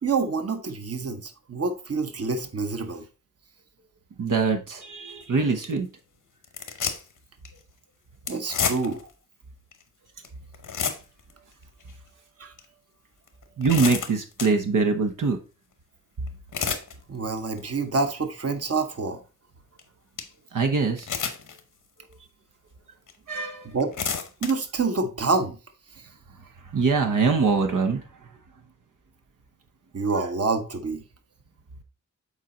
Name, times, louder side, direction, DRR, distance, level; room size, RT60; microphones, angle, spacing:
voice 1, 0.0-3.0 8.3-9.1 12.4-12.5 17.1-19.2 23.6-23.9 24.4-25.6 25.9-26.0 29.9-31.0, right 4 dB, 50° right, 1.0 m, -27 dB
voice 2, 4.2-5.9 13.6-15.4 20.5-21.1 23.3-23.7 26.7-28.0, right 4 dB, 80° right, 1.0 m, -23 dB
sound 1, 5.1-5.2 5.6-5.8 6.4-7.2 7.4-7.6 8.3-9.1 9.7-9.8 10.2-10.3 10.5-11.3 11.8-11.9 12.6-12.7 13.3-14.6 16.3-16.9 17.4-17.7 18.2-18.3 19.8-19.9 20.2-20.3 21.0-21.6 22.1-22.2 23.1-23.2 23.7-24.5, left 6 dB, 85° left, 1.0 m, -30 dB
7.3 x 4.3 x 3.8 m
wide cardioid pair, 65°, 31 cm